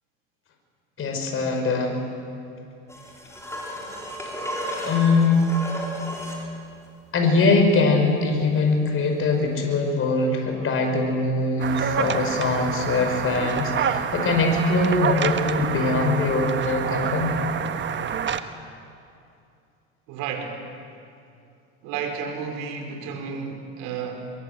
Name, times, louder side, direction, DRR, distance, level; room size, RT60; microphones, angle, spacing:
voice 1, 1.0-2.0 4.8-5.6 7.1-17.4, left 3 dB, 35° left, 4 dB, 5.5 m, -22 dB
sound 1, 2.9-6.5 9.4-9.5, equal, 10° left, 5.5 m, -33 dB
sound 2, 11.6-18.4, right 7 dB, 30° right, 1.4 m, -27 dB
voice 2, 20.1-20.6 21.8-24.3, right 6 dB, 65° right, 4 dB, 5.1 m, -32 dB
22.5 x 22.5 x 8.2 m, 2.5 s
supercardioid pair, 100°, 35 cm